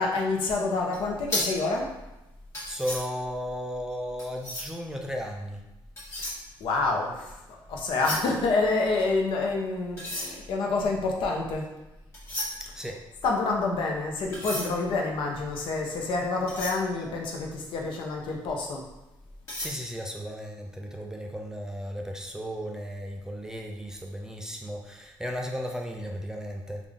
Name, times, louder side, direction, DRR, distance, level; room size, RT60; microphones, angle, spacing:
voice 1, 0.0-1.9 6.6-11.7 13.2-18.9, left 3 dB, 70° left, 0 dB, 0.7 m, -28 dB
sound 1, 0.9-4.9 5.7-7.4 7.7-9.4 9.9-17.9 18.3-18.5 18.9-19.7, left 1 dB, 30° left, 1.5 m, -36 dB
voice 2, 2.7-5.6 12.7-13.0 19.6-26.8, equal, 5° right, 1 dB, 0.3 m, -35 dB
3.6 x 2.4 x 3.4 m, 0.98 s
cardioid pair, 135°, 9 cm